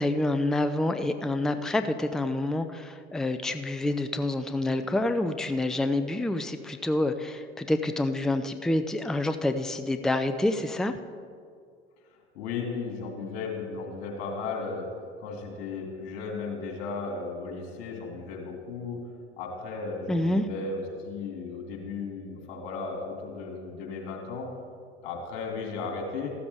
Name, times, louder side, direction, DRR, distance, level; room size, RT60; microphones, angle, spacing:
voice 1, 0.0-10.9 20.1-20.5, left 2 dB, ahead, 9 dB, 0.5 m, -27 dB
voice 2, 12.3-14.9 15.2-19.0 19.4-24.5 25.0-26.3, left 4 dB, 65° left, 1 dB, 2.6 m, -35 dB
14.0 x 13.0 x 3.5 m, 2.2 s
figure-of-eight pair, 70°, 33 cm